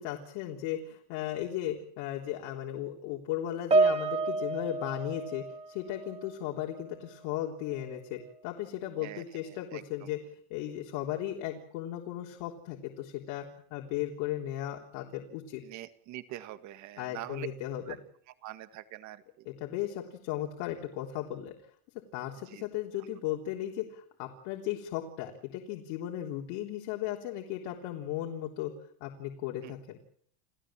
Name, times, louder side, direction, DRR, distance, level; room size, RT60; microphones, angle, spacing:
voice 1, 0.0-10.2 10.5-13.5 13.7-15.6 17.0-18.0 19.5-21.5 22.1-28.7 29.0-30.0, left 12 dB, 60° left, 1 dB, 3.7 m, -36 dB
Piano, 3.7-6.4 6.6-6.9 7.7-7.8, right 3 dB, 15° right, 2.0 m, -29 dB
voice 2, 9.0-10.1 15.6-17.5 17.9-18.0 18.4-19.5 22.5-22.7 23.0-23.1 29.6-29.7, right 14 dB, 45° right, 11 dB, 1.9 m, -44 dB
29.5 x 15.5 x 7.6 m, 0.63 s
supercardioid pair, 150°, 40 cm